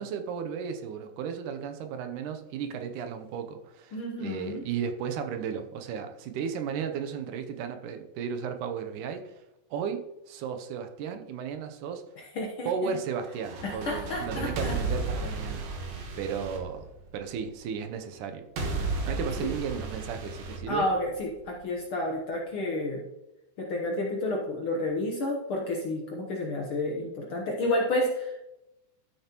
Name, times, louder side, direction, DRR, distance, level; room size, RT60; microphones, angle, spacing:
voice 1, 0.0-9.3 9.7-12.1 12.7-15.7 16.2-16.9 17.1-18.5 19.0-20.9, right 7 dB, 80° right, 7 dB, 2.3 m, -34 dB
voice 2, 3.9-4.6 12.3-12.9 13.6-14.8 19.4-19.5 20.7-23.0 23.6-28.5, left 1 dB, 60° left, 0 dB, 1.4 m, -30 dB
sound 1, 13.3-17.4 18.6-21.4, right 3 dB, 60° right, 2.2 m, -34 dB
13.0 x 6.7 x 2.9 m, 0.93 s
omnidirectional pair, 3.6 m